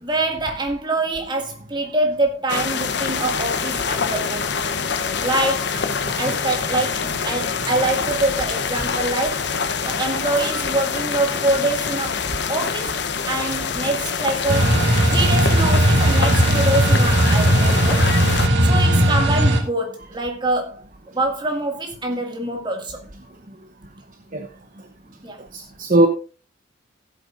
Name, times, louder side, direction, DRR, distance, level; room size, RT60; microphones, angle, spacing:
voice 1, 0.0-4.5 5.2-5.8 6.2-9.5 9.8-12.2 12.5-13.0 13.3-14.7 15.1-18.1 18.6-20.8 21.1-23.0 25.2-25.4, right 2 dB, 25° right, 2.1 m, -25 dB
sound 1, 2.5-18.5, left 6 dB, 60° left, 0.8 m, -25 dB
sound 2, 14.5-19.6, right 1 dB, 60° right, 2.0 m, -17 dB
voice 2, 25.5-26.1, right 1 dB, 40° right, 0.9 m, -18 dB
16.0 x 8.2 x 2.5 m
head